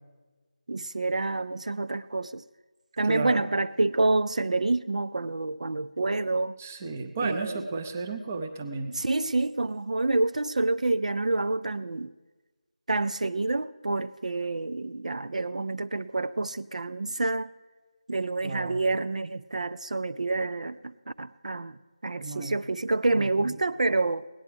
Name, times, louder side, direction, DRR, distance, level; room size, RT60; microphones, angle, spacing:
voice 1, 0.7-2.4 3.0-6.6 7.2-7.6 8.9-12.1 12.9-17.5 18.1-24.3, right 2 dB, 65° right, 13 dB, 0.4 m, -28 dB
voice 2, 3.0-3.5 6.6-8.9 18.4-18.8 22.2-22.6 23.1-23.6, right 3 dB, 15° right, 6 dB, 0.6 m, -33 dB
18.0 x 10.5 x 4.6 m, 1.3 s
figure-of-eight pair, 175°, 4 cm